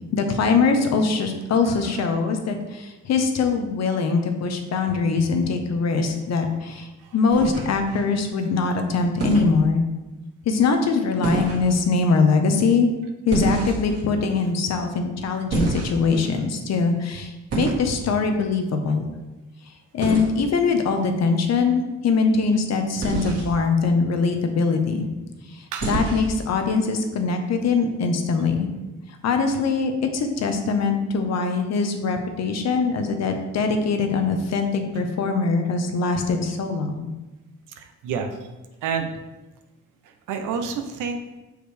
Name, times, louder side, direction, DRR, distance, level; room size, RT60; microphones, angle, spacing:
voice 1, 0.1-9.8 10.5-12.9 13.2-19.0 19.9-25.1 25.5-28.7 29.2-37.1, left 4 dB, 60° left, 6 dB, 1.0 m, -22 dB
sound 1, 7.3-8.0 9.2-9.5 11.2-11.7 13.3-14.0 15.5-16.2 17.5-17.9 20.0-20.3 23.0-23.5 25.8-26.4, right 3 dB, 55° right, 2.2 m, -26 dB
voice 2, 37.8-38.3 38.8-39.2 40.3-41.2, right 6 dB, 90° right, 5 dB, 0.8 m, -29 dB
6.3 x 4.9 x 3.4 m, 1.1 s
cardioid pair, 90°, 30 cm